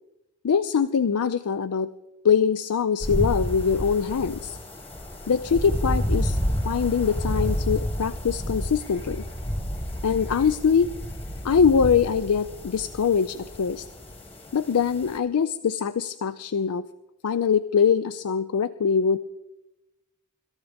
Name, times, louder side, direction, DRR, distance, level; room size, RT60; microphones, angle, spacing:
voice 1, 0.4-1.9 2.2-4.6 5.3-6.4 6.6-9.2 10.0-10.9 11.4-13.9 14.5-16.9 17.2-19.2, left 6 dB, 80° left, 14 dB, 0.4 m, -23 dB
sound 1, 3.0-15.2, equal, 25° left, 1.8 m, -30 dB
25.5 x 13.5 x 3.5 m, 1.0 s
head